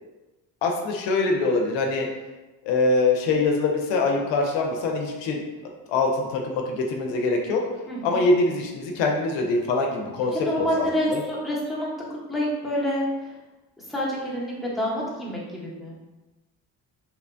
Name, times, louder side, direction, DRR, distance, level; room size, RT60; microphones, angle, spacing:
voice 1, 0.6-2.1 2.6-5.4 5.9-7.6 8.0-11.2, left 3 dB, 80° left, 1 dB, 0.5 m, -24 dB
voice 2, 7.9-8.2 10.3-11.9 12.3-13.3 13.9-15.9, equal, ahead, -6 dB, 0.8 m, -27 dB
2.8 x 2.1 x 2.5 m, 1.1 s
supercardioid pair, 60°, 43 cm